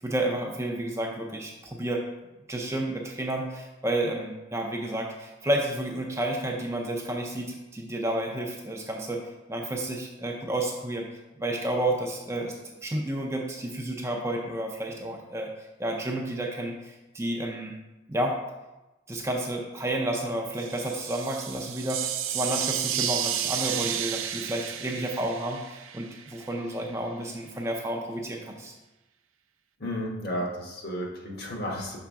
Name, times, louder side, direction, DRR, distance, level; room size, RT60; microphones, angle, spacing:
voice 1, 0.0-2.0 2.5-11.1 11.4-12.5 12.8-15.5 15.8-17.8 18.1-18.4 19.1-28.7, right 1 dB, 15° right, 1 dB, 0.4 m, -31 dB
sound 1, 20.5-26.4, right 10 dB, 80° right, 0.4 m, -32 dB
voice 2, 29.8-32.0, equal, 50° left, -1 dB, 1.1 m, -33 dB
5.8 x 4.8 x 3.6 m, 1.0 s
head